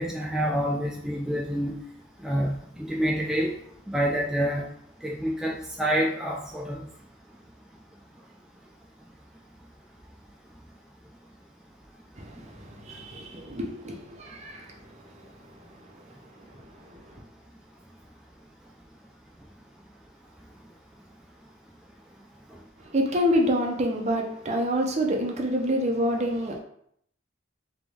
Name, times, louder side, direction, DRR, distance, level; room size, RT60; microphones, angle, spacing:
voice 1, 0.0-1.7 2.2-3.5 3.9-4.6 5.0-6.8, equal, 5° right, 0.3 m, -27 dB
voice 2, 12.2-14.7 16.9-17.0 22.9-26.6, equal, 35° right, 0.6 m, -27 dB
3.4 x 2.9 x 3.5 m
head